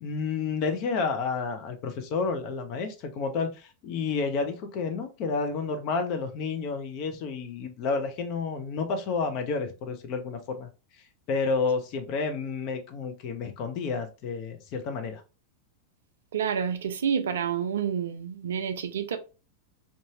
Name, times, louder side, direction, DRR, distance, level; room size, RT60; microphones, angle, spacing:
voice 1, 0.0-10.7 11.3-15.2, left 4 dB, 40° left, 0.6 m, -30 dB
voice 2, 16.3-19.2, right 7 dB, 65° right, 0.4 m, -29 dB
2.6 x 2.3 x 2.7 m
figure-of-eight pair, 90°, 0 cm